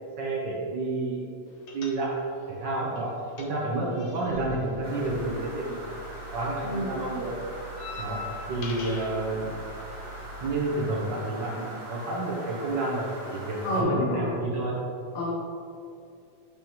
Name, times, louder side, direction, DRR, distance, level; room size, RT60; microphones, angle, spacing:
voice 1, 0.2-1.3 1.7-2.2 2.5-5.8 6.3-7.3 8.0-8.2 8.5-9.5 10.4-14.8, right 2 dB, 75° right, -4 dB, 1.0 m, -30 dB
sound 1, 1.7-2.4 2.7-6.1 6.3-9.2, left 3 dB, 85° left, 1.1 m, -43 dB
sound 2, 4.3-10.5, right 3 dB, 30° right, 1.4 m, -44 dB
sound 3, 4.8-13.8, right 1 dB, 50° right, 0.3 m, -42 dB
voice 2, 6.6-7.0 13.6-14.4 15.2-15.3, left 1 dB, 70° left, -6 dB, 2.2 m, -28 dB
8.7 x 5.1 x 3.0 m, 2.4 s
omnidirectional pair, 3.4 m